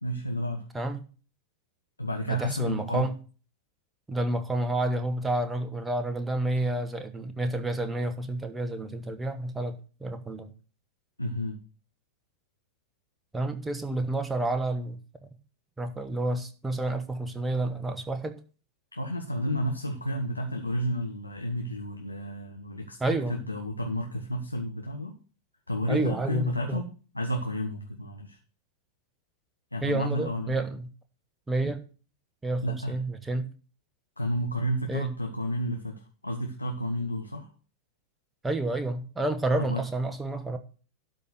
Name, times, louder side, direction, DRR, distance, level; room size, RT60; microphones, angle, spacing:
voice 1, 0.0-0.6 2.0-3.1 11.2-11.6 18.9-25.2 25.7-28.4 29.7-30.6 32.6-33.0 34.2-37.5 39.6-39.8, equal, 85° left, 2 dB, 1.1 m, -31 dB
voice 2, 2.3-3.2 4.1-10.5 13.3-15.3 15.8-18.4 23.0-23.4 25.9-26.8 29.8-30.9 31.5-31.8 32.4-33.5 34.9-35.1 38.4-40.6, right 2 dB, 10° right, 7 dB, 1.2 m, -29 dB
12.0 x 4.4 x 6.8 m, 0.38 s
figure-of-eight pair, 90°, 0 cm